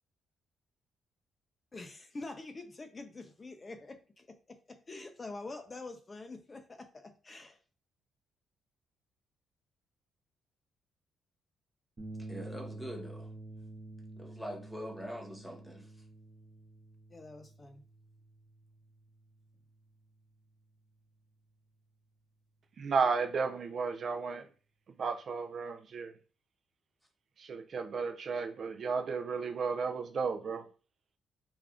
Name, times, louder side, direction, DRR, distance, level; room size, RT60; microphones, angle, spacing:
voice 1, 1.7-7.6 17.1-17.8, left 3 dB, 30° left, 0.4 m, -46 dB
sound 1, 12.0-20.4, right 2 dB, 35° right, 0.8 m, -49 dB
voice 2, 12.3-13.3 14.2-15.9, equal, 5° left, 1.0 m, -43 dB
voice 3, 22.8-24.5 25.0-26.1 27.4-30.7, right 5 dB, 50° right, 0.4 m, -33 dB
3.4 x 2.3 x 3.6 m
cardioid pair, 90°, 0 cm